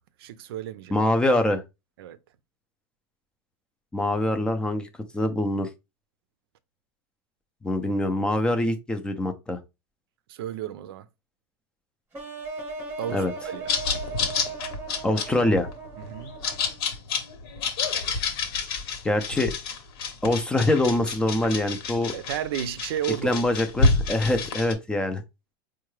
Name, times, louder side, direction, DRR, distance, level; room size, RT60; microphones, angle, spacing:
voice 1, 0.2-1.0 2.0-2.2 10.3-11.1 13.0-13.8 16.0-16.3 22.1-23.4, right 11 dB, 85° right, 0.5 m, -32 dB
voice 2, 0.9-1.6 3.9-4.9 5.1-5.7 7.6-9.6 13.1-13.3 15.0-15.7 19.0-19.5 20.2-22.1 23.2-25.2, left 1 dB, 5° left, 0.4 m, -24 dB
sound 1, 12.1-17.0, right 3 dB, 15° right, 0.9 m, -38 dB
sound 2, 13.7-24.7, left 4 dB, 70° left, 1.0 m, -28 dB
4.6 x 2.2 x 3.1 m
supercardioid pair, 160°, 13 cm